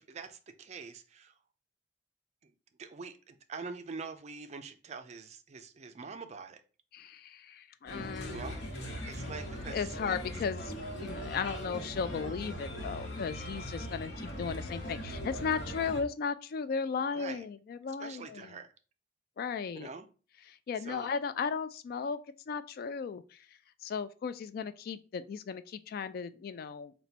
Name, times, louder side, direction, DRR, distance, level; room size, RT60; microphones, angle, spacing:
voice 1, 0.0-1.3 2.4-2.5 2.8-6.6 8.3-8.6 9.0-10.2 17.1-17.4 18.0-18.7 19.7-20.1 20.8-21.1, right 4 dB, 40° right, 0.4 m, -44 dB
voice 2, 6.9-8.5 9.7-10.7 11.0-18.6 19.4-19.9 20.5-22.2 22.5-23.4 23.8-26.9, left 6 dB, 55° left, 0.3 m, -36 dB
Bird, 7.9-16.0, equal, 80° left, 1.0 m, -40 dB
4.0 x 2.2 x 4.1 m
head